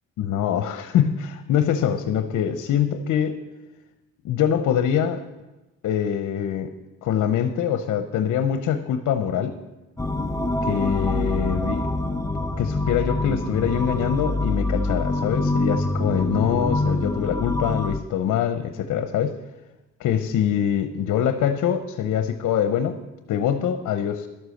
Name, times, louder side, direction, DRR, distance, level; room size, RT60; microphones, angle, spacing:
voice 1, 0.2-3.3 4.2-5.2 5.8-6.7 7.0-9.6 10.6-11.9 12.6-19.4 20.0-23.0 23.3-24.3, left 9 dB, 75° left, 9 dB, 0.8 m, -24 dB
sound 1, 10.0-18.0, left 2 dB, 10° left, 0.7 m, -25 dB
12.0 x 8.1 x 6.5 m, 1.1 s
cardioid pair, 90°, 30 cm